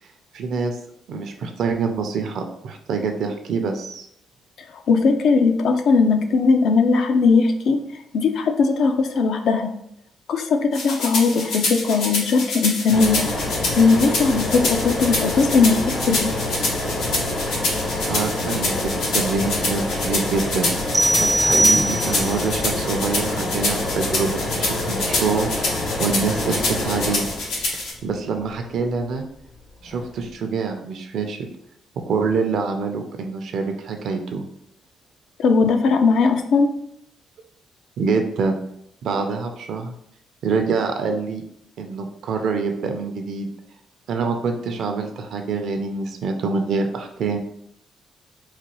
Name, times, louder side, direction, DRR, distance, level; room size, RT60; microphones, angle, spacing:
voice 1, 0.3-0.8 1.1-4.1 18.1-27.3 28.0-29.2 29.8-31.5 32.1-34.4 38.0-38.6 39.0-39.9 40.4-41.4 41.8-43.5 44.1-47.4, right 4 dB, 70° right, 5 dB, 0.5 m, -25 dB
voice 2, 4.9-7.8 8.1-9.7 10.3-13.3 13.8-16.3 35.4-36.7, left 4 dB, 70° left, 6 dB, 0.4 m, -18 dB
sound 1, 10.7-27.9, left 2 dB, 90° left, 0.9 m, -27 dB
sound 2, 12.9-28.2 29.8-30.0 30.3-30.4, left 2 dB, 55° left, 1.0 m, -27 dB
sound 3, 20.9-22.5, right 1 dB, 10° right, 0.3 m, -19 dB
4.0 x 2.2 x 3.0 m, 0.73 s
cardioid pair, 90°, 0 cm